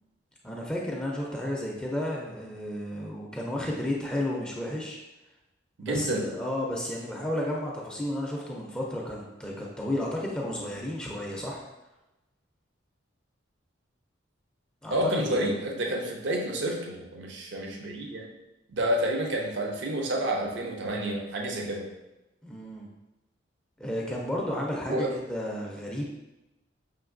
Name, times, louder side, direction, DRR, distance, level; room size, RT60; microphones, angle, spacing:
voice 1, 0.4-5.0 5.8-11.6 14.8-15.5 22.4-22.9 23.8-26.1, left 1 dB, 5° left, -2 dB, 0.4 m, -32 dB
voice 2, 5.8-6.3 14.9-18.3 18.7-21.9 24.9-25.1, right 1 dB, 65° right, 1 dB, 0.5 m, -29 dB
5.8 x 2.6 x 2.5 m, 0.98 s
head